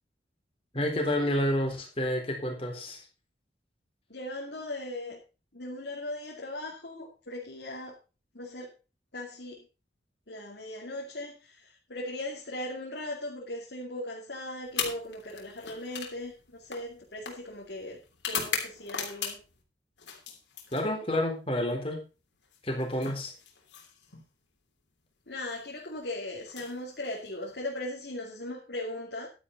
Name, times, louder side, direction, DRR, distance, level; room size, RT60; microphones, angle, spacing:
voice 1, 0.7-3.1 20.7-22.0 22.6-23.3, left 1 dB, 30° left, 1 dB, 3.8 m, -29 dB
voice 2, 4.1-5.2 5.5-8.0 8.3-8.7 9.1-9.6 10.3-18.0 18.3-19.4 25.3-29.3, left 1 dB, 70° left, -2 dB, 2.6 m, -38 dB
sound 1, 14.7-19.6 20.0-21.2 22.4-24.3 25.3-25.6 26.4-27.6, left 7 dB, 85° left, 3.2 m, -39 dB
11.5 x 10.0 x 4.0 m, 0.32 s
head